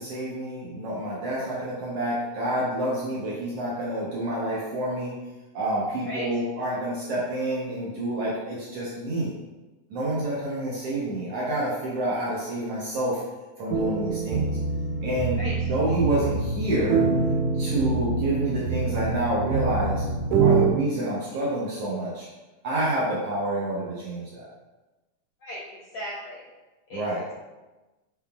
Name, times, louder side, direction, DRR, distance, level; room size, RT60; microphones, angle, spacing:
voice 1, 0.0-5.1 5.5-9.3 9.9-13.2 13.6-14.5 15.0-15.4 15.7-17.0 17.6-20.0 20.4-22.3 22.6-24.5 26.9-27.2, right 1 dB, 70° right, -6 dB, 1.6 m, -28 dB
sound 1, 13.7-20.7, right 4 dB, 90° right, 1.5 m, -25 dB
voice 2, 25.4-26.4 26.9-27.0, equal, 75° left, -7 dB, 1.4 m, -36 dB
5.6 x 3.6 x 2.3 m, 1.1 s
omnidirectional pair, 3.5 m